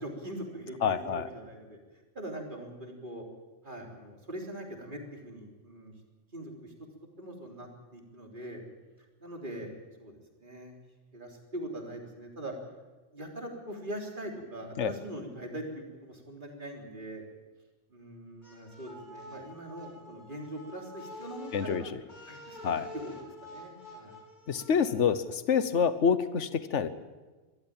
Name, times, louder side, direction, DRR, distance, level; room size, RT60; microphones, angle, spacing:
voice 1, 0.0-1.8 2.1-3.2 3.6-5.9 6.3-6.7 7.2-8.6 9.2-9.7 10.0-10.8 11.1-12.5 13.1-17.2 17.9-21.9 22.3-24.1, right 1 dB, 45° right, 1 dB, 3.7 m, -42 dB
voice 2, 0.8-1.3 14.8-14.9 21.5-22.0 22.6-22.8 24.5-26.9, left 6 dB, 75° left, 13 dB, 1.4 m, -27 dB
sound 1, 18.4-25.1, left 1 dB, 40° left, 4.4 m, -48 dB
23.5 x 14.0 x 8.9 m, 1.2 s
omnidirectional pair, 1.2 m